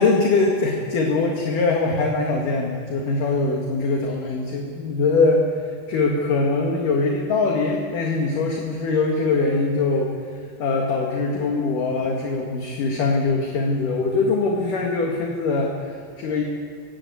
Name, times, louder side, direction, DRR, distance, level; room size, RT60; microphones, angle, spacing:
voice 1, 0.0-10.1 10.6-16.4, left 3 dB, 55° left, 0 dB, 2.8 m, -22 dB
20.0 x 17.0 x 8.5 m, 2.3 s
omnidirectional pair, 5.3 m